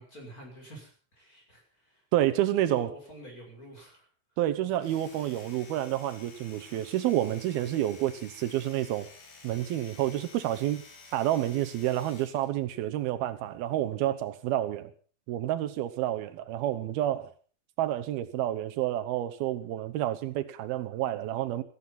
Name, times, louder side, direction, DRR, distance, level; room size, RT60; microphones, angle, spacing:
voice 1, 0.0-2.0 2.7-4.1, right 1 dB, 20° left, 6.1 m, -48 dB
voice 2, 2.1-2.9 4.4-9.1 9.4-10.8 11.1-14.9 15.3-17.3 17.8-21.6, right 13 dB, 80° right, 2.8 m, -29 dB
Domestic sounds home sounds, 4.7-12.5, left 3 dB, 75° left, 5.8 m, -52 dB
17.0 x 14.5 x 5.8 m
omnidirectional pair, 4.4 m